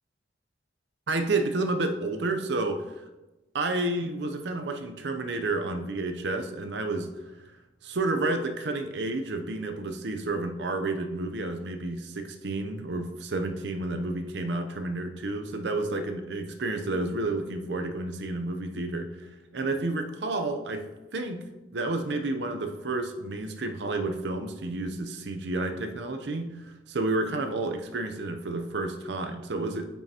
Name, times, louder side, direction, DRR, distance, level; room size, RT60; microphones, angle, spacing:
voice 1, 1.1-2.8 3.5-7.1 7.8-19.1 19.5-20.8 21.1-21.4 21.7-29.9, right 2 dB, 70° right, 7 dB, 0.6 m, -30 dB
9.0 x 5.6 x 2.9 m, 1.1 s
head